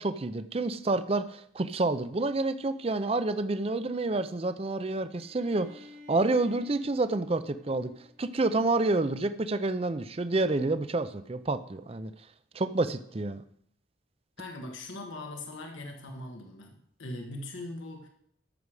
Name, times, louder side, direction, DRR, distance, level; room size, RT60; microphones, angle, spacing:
voice 1, 0.0-7.9 8.2-12.1 12.5-13.4, right 2 dB, 30° right, 12 dB, 0.5 m, -29 dB
Bowed string instrument, 5.1-8.9, left 3 dB, 75° right, 3.3 m, -53 dB
voice 2, 14.4-18.1, left 2 dB, 80° left, 3 dB, 1.3 m, -41 dB
13.5 x 6.3 x 4.8 m, 0.68 s
head